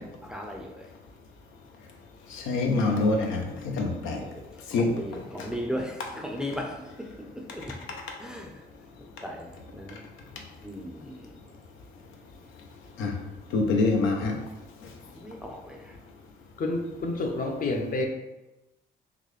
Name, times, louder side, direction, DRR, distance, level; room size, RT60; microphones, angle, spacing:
voice 1, 0.3-0.7 4.9-6.7 8.2-8.5 9.2-9.5 9.8-9.9 10.6-11.1 15.2-15.8, equal, 5° right, 0.5 m, -35 dB
voice 2, 2.3-4.2 4.7-4.9 5.4-5.5 13.0-13.1 13.5-14.3, left 3 dB, 90° left, 0.6 m, -25 dB
voice 3, 16.6-18.1, left 2 dB, 45° left, 0.6 m, -29 dB
3.9 x 2.3 x 3.1 m
cardioid pair, 90°, 20 cm